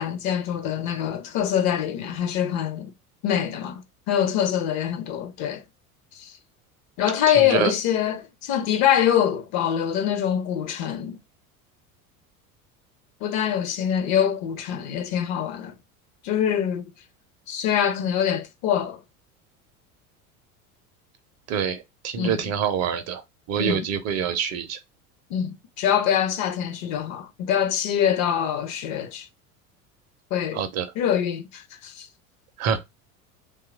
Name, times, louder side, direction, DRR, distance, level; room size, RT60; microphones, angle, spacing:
voice 1, 0.0-2.9 3.2-3.8 4.1-5.6 6.1-6.3 7.0-11.2 13.2-15.7 16.2-16.8 17.5-19.0 22.2-22.4 23.6-23.9 25.3-29.3 30.3-30.6 31.0-32.1, left 9 dB, 40° left, 0.5 m, -24 dB
voice 2, 7.4-7.7 21.5-23.2 23.5-24.8 30.5-30.9 32.6-32.8, right 8 dB, 40° right, 0.5 m, -26 dB
2.8 x 2.4 x 3.6 m
figure-of-eight pair, 75°, 43 cm